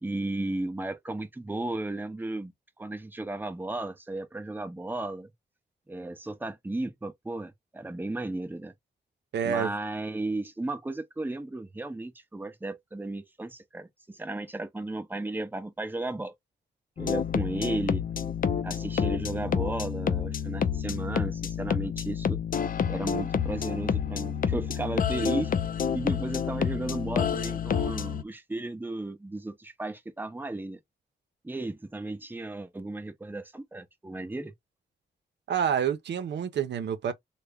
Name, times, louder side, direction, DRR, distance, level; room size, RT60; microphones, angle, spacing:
voice 1, 0.0-2.5 2.8-5.3 5.9-8.7 9.4-16.3 17.0-18.0 18.6-22.4 22.9-25.5 25.9-30.8 31.4-34.5, right 2 dB, 10° right, 0.7 m, -34 dB
voice 2, 9.3-9.7 35.5-37.1, right 8 dB, 80° right, 0.7 m, -28 dB
sound 1, 17.0-28.2, left 7 dB, 55° left, 0.5 m, -29 dB
3.3 x 2.2 x 3.4 m
cardioid pair, 90°, 18 cm